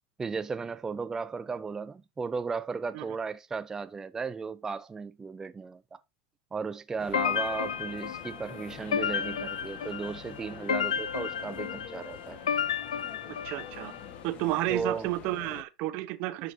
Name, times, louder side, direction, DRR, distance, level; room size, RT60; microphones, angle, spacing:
voice 1, 0.2-6.0 6.5-12.4 14.7-15.1, right 5 dB, 20° right, 0.4 m, -35 dB
sound 1, 7.0-15.6, left 7 dB, 45° left, 1.3 m, -46 dB
sound 2, 7.1-14.1, left 8 dB, 85° left, 0.5 m, -32 dB
voice 2, 13.3-13.9 14.2-16.5, right 17 dB, 55° right, 0.8 m, -32 dB
10.5 x 5.2 x 2.7 m
hypercardioid pair, 90°, 3 cm